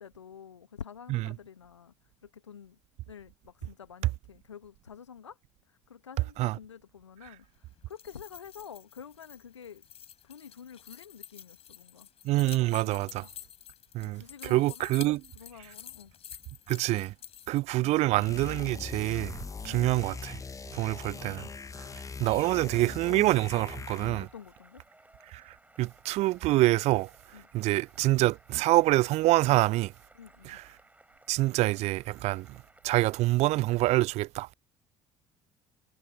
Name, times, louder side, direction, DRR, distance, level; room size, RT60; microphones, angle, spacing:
voice 1, 0.0-1.9 2.2-2.8 3.1-5.4 5.7-9.9 10.2-12.1 12.8-13.3 14.0-14.9 15.3-16.1 17.8-18.0 19.6-20.0 21.1-23.3 24.2-24.8 27.3-27.5 30.1-30.6, left 7 dB, 80° left, 1.4 m, -49 dB
sound 1, 7.8-17.6, left 10 dB, 40° left, 4.5 m, -49 dB
voice 2, 12.2-13.3 13.9-14.2 14.5-15.2 16.7-17.1 17.5-19.4 19.6-20.4 20.7-21.4 22.2-24.3 25.3-25.4 25.8-27.1 27.5-29.9 30.4-30.6 31.3-32.5 32.8-34.5, right 18 dB, 45° right, 0.4 m, -26 dB
sound 2, 18.2-24.4, left 4 dB, 20° left, 1.3 m, -41 dB
Cheering / Applause, 23.6-33.7, right 2 dB, 10° right, 7.7 m, -60 dB
figure-of-eight pair, 55°, 15 cm